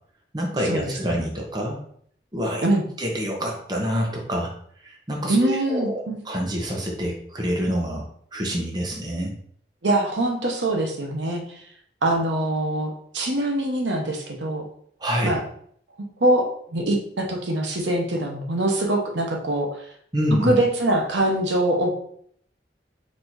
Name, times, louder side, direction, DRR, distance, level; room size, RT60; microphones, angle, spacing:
voice 1, 0.3-1.8 2.3-2.6 3.0-4.5 4.8-8.0 8.3-9.3 15.0-15.3 20.1-20.5, equal, 25° right, 0 dB, 0.8 m, -26 dB
voice 2, 5.3-6.2 9.8-11.4 12.0-14.6 15.2-15.4 16.2-19.8 20.4-21.9, right 1 dB, 90° right, 1 dB, 0.9 m, -23 dB
4.2 x 2.6 x 4.6 m, 0.63 s
head